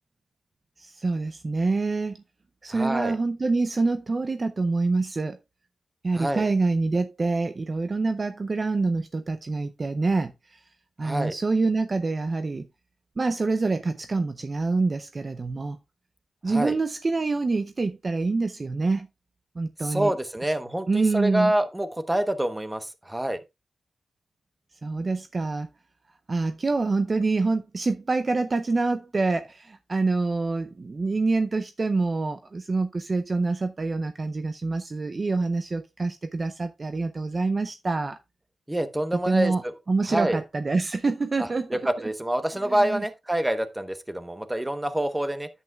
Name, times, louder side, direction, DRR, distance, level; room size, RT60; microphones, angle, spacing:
voice 1, 0.8-2.2 2.6-5.4 6.0-10.6 11.0-12.7 13.2-15.8 16.4-19.1 19.6-20.1 20.9-21.5 24.8-25.7 26.3-38.2 39.3-39.6 39.9-41.9 42.6-43.0, right 3 dB, 35° right, 0.5 m, -26 dB
voice 2, 2.7-3.2 6.1-6.4 11.0-11.3 16.5-16.8 19.8-23.4 38.7-39.7 40.1-40.4 41.4-45.5, right 1 dB, 10° right, 1.0 m, -27 dB
10.5 x 8.2 x 2.3 m
wide cardioid pair, 105°, 0 cm